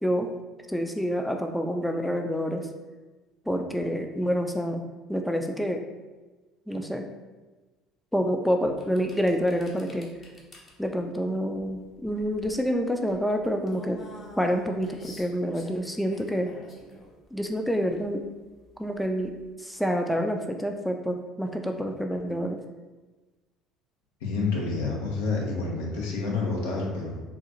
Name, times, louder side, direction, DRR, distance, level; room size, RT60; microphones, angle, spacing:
voice 1, 0.7-2.7 3.5-4.8 5.1-5.8 6.7-7.0 8.1-10.1 10.8-14.0 14.4-16.5 17.3-18.2 18.8-22.6, equal, 5° left, 4 dB, 0.3 m, -27 dB
sound 1, 8.7-19.5, left 1 dB, 40° left, 0.8 m, -49 dB
voice 2, 24.2-27.2, left 3 dB, 80° left, -2 dB, 0.7 m, -28 dB
3.6 x 2.4 x 2.9 m, 1.2 s
hypercardioid pair, 70°, 0 cm